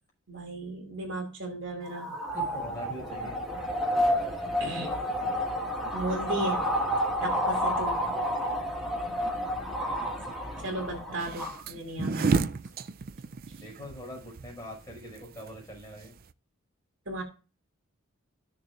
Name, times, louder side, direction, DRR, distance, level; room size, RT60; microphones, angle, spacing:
voice 1, 0.3-2.1 4.6-4.9 5.9-6.6 7.2-8.0 10.6-12.4 17.1-17.2, right 2 dB, 60° right, 2 dB, 2.6 m, -35 dB
sound 1, 1.9-11.6, equal, ahead, 1.8 m, -30 dB
voice 2, 2.3-3.4 13.6-16.1, equal, 15° left, -3 dB, 6.0 m, -42 dB
sound 2, 11.2-16.3, right 4 dB, 45° right, 0.4 m, -31 dB
15.5 x 6.6 x 2.5 m, 0.33 s
head